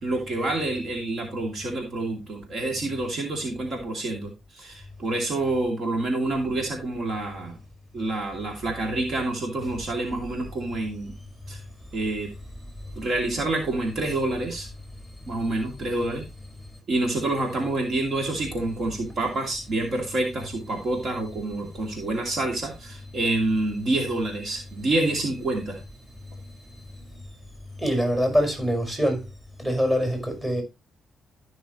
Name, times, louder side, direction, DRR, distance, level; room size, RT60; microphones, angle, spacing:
voice 1, 0.0-7.6 7.9-11.1 11.5-11.6 11.9-12.3 13.0-14.7 15.3-16.2 16.9-25.8, right 2 dB, 55° right, 2.7 m, -27 dB
voice 2, 27.8-29.2 29.6-30.6, equal, 15° right, 4.9 m, -24 dB
14.0 x 6.2 x 3.0 m
cardioid pair, 90°, 0 cm